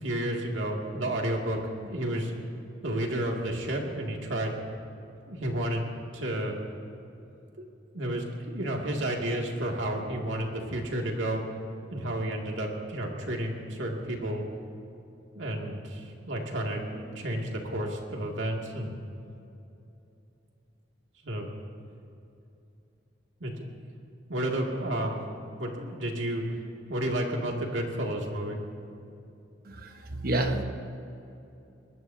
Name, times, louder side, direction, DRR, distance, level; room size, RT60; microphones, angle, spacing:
voice 1, 0.0-2.3 2.8-4.6 5.3-5.8 6.1-6.6 7.6-7.7 7.9-11.4 11.9-14.4 15.3-19.0 21.2-21.5 23.4-23.7 24.3-25.2 25.6-26.4 26.9-28.6 30.1-30.2, right 1 dB, 85° right, 0 dB, 2.5 m, -31 dB
voice 2, 29.6-30.6, right 2 dB, 50° right, 5 dB, 1.2 m, -29 dB
22.5 x 19.5 x 2.8 m, 2.8 s
head